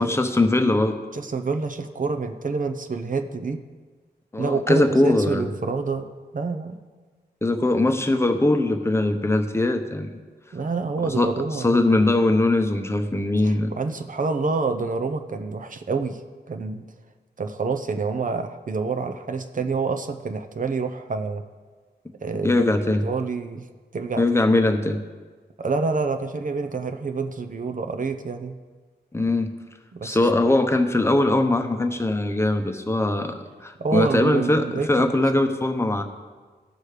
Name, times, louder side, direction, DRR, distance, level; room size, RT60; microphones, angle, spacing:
voice 1, 0.0-1.0 4.3-5.5 7.4-10.2 11.0-13.7 22.4-23.0 24.2-25.0 29.1-29.5 30.0-36.0, left 2 dB, 15° left, 6 dB, 0.9 m, -21 dB
voice 2, 1.1-3.6 4.4-6.1 6.3-6.8 10.5-11.8 13.4-16.2 16.5-16.9 17.4-21.4 22.2-22.6 23.0-23.6 23.9-24.2 25.6-28.6 29.9-30.2 33.8-35.2, right 4 dB, 50° right, 7 dB, 0.7 m, -27 dB
16.5 x 6.3 x 5.0 m, 1.4 s
wide cardioid pair, 110°, 18 cm